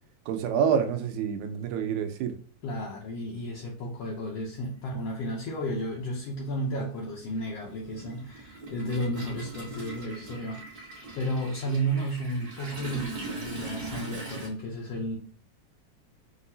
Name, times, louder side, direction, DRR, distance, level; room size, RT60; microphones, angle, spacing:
voice 1, 0.3-2.4, right 7 dB, 90° right, 7 dB, 2.1 m, -27 dB
voice 2, 2.6-15.2, right 1 dB, 70° left, -3 dB, 1.7 m, -33 dB
Toilet flush, 4.0-4.1 5.4-5.5 5.8-14.5, right 3 dB, 40° right, 1.7 m, -41 dB
6.0 x 2.7 x 2.7 m, 0.43 s
omnidirectional pair, 3.3 m